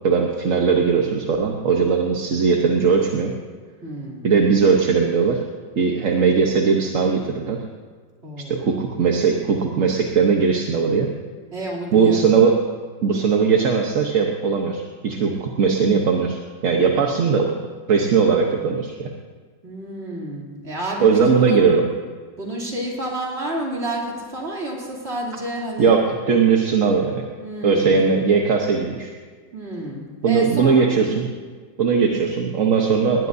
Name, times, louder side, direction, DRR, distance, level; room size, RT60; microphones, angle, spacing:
voice 1, 0.0-3.3 4.2-5.4 5.7-7.6 8.4-11.1 11.9-12.6 13.0-17.5 17.9-19.1 21.0-21.8 25.8-27.3 27.6-29.1 30.2-31.3 31.8-33.3, right 5 dB, 50° right, 1 dB, 1.2 m, -19 dB
voice 2, 3.8-4.3 8.2-8.7 11.5-12.3 19.6-21.7 22.4-26.0 27.3-28.0 29.5-30.9 31.9-32.2, right 1 dB, 35° right, -3 dB, 3.1 m, -30 dB
20.0 x 19.0 x 2.7 m, 1.5 s
omnidirectional pair, 1.9 m